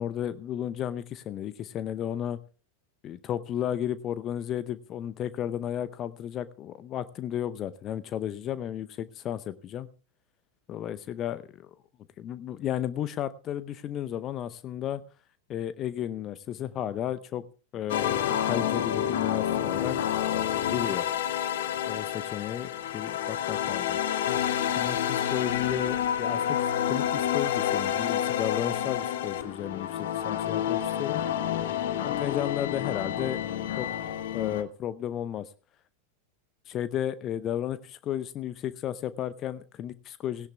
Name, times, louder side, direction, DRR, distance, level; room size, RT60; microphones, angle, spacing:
voice 1, 0.0-2.4 3.0-9.9 10.7-11.7 12.2-15.0 15.5-17.4 17.7-20.0 20.7-21.1 21.9-24.0 24.7-31.2 32.0-33.4 33.8-33.9 34.3-35.5 36.7-40.5, left 10 dB, 30° left, 16 dB, 0.6 m, -33 dB
sound 1, 17.9-34.6, left 10 dB, 55° left, 1.2 m, -29 dB
18.0 x 17.0 x 2.2 m, 0.35 s
figure-of-eight pair, 90°, 0 cm